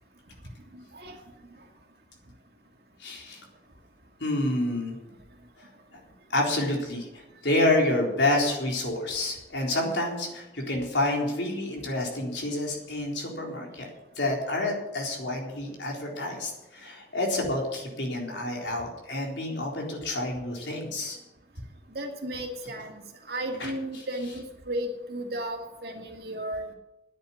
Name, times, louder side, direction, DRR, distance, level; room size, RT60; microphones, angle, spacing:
voice 1, 0.7-1.2 21.9-23.0 23.3-26.7, right 1 dB, 60° right, 2 dB, 2.3 m, -34 dB
voice 2, 3.0-3.4 4.2-5.0 6.3-13.9 14.2-21.2 22.8-22.9 23.6-24.4, left 1 dB, 80° left, 0 dB, 3.8 m, -29 dB
10.0 x 8.6 x 9.9 m, 0.97 s
head